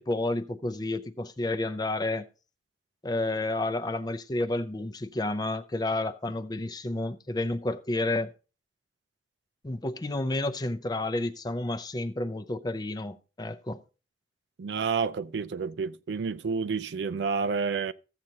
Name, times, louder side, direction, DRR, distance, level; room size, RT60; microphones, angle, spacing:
voice 1, 0.0-2.3 3.0-8.3 9.6-13.8, left 2 dB, 25° left, 0.5 m, -30 dB
voice 2, 14.6-17.9, right 5 dB, 70° right, 0.4 m, -29 dB
14.5 x 7.6 x 2.8 m
head